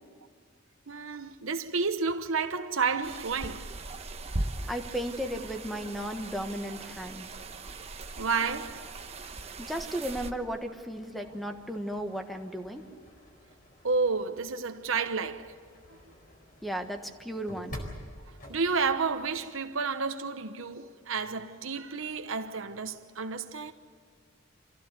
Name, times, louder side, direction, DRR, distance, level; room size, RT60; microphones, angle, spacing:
voice 1, 0.9-3.7 7.4-7.5 8.2-8.8 13.8-15.5 18.5-23.7, right 4 dB, 80° right, 1.0 m, -31 dB
sound 1, 3.0-10.3, right 2 dB, 30° right, 1.1 m, -39 dB
sound 2, 3.2-19.5, left 1 dB, 40° left, 4.5 m, -51 dB
voice 2, 4.7-7.3 9.6-12.8 16.6-17.8, equal, ahead, 1.3 m, -35 dB
25.5 x 16.0 x 8.2 m
head